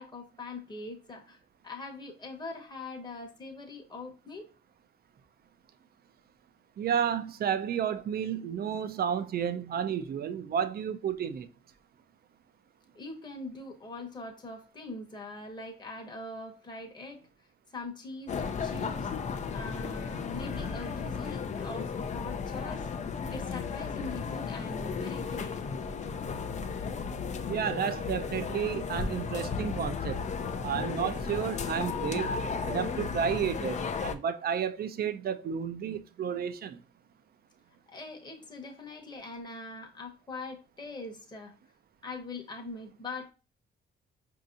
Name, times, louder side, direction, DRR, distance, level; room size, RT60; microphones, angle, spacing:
voice 1, 0.0-4.5 12.9-17.3 17.7-19.2 19.5-22.9 23.3-25.6 26.8-27.2 37.9-41.6 42.0-43.3, left 3 dB, 20° left, 1.0 m, -42 dB
voice 2, 6.8-11.5 27.5-30.2 30.6-32.3 32.6-36.8, right 8 dB, 50° right, 0.5 m, -31 dB
sound 1, 18.3-34.2, left 5 dB, 35° left, 0.5 m, -34 dB
5.1 x 2.8 x 2.5 m
cardioid pair, 90°, 20 cm